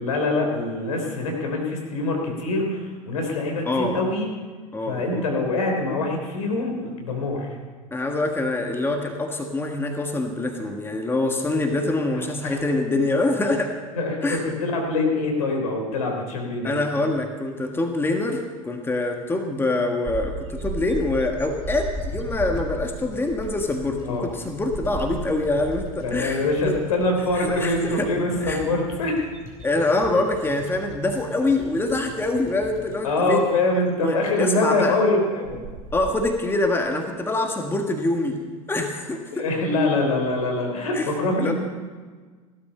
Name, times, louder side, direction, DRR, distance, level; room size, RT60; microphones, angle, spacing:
voice 1, 0.0-4.3 4.9-7.5 12.1-12.6 13.9-16.8 24.0-24.3 26.0-29.2 33.0-35.6 39.3-41.5, left 2 dB, 70° left, 2 dB, 3.7 m, -24 dB
voice 2, 3.6-4.0 4.7-5.2 7.9-13.7 14.2-14.4 16.6-26.7 27.3-28.1 28.4-28.6 29.6-33.5 34.0-35.0 35.9-38.4 38.7-39.4 40.9-41.1 41.4-41.5, left 2 dB, 10° left, 3 dB, 1.6 m, -25 dB
sound 1, 20.1-26.1 26.4-26.8 27.2-28.2 28.8-31.1 31.5-31.7 32.7-32.8 35.0-35.1 35.4-36.3, right 1 dB, 35° right, 2.3 m, -35 dB
sound 2, 22.0-34.2 34.4-34.5, left 4 dB, 45° left, 4.4 m, -43 dB
16.5 x 12.0 x 5.7 m, 1.5 s
figure-of-eight pair, 80°, 19 cm